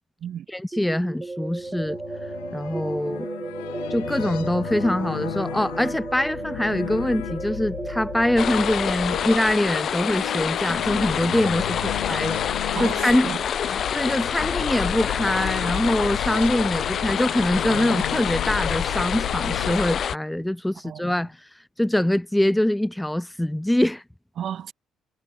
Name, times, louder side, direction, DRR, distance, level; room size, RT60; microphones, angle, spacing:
voice 1, 0.5-3.3 3.9-13.3 13.9-21.5 21.8-24.0, left 1 dB, 5° left, 0.4 m, -24 dB
sound 1, 0.7-12.4, right 3 dB, 25° right, 2.7 m, -35 dB
sound 2, 1.5-19.8, left 39 dB, 90° left, 0.5 m, -35 dB
sound 3, 8.4-20.2, left 8 dB, 55° left, 0.8 m, -27 dB
voice 2, 11.8-12.2 12.7-13.8 20.8-21.0 24.4-24.7, right 9 dB, 60° right, 2.6 m, -34 dB
supercardioid pair, 55°, 0 cm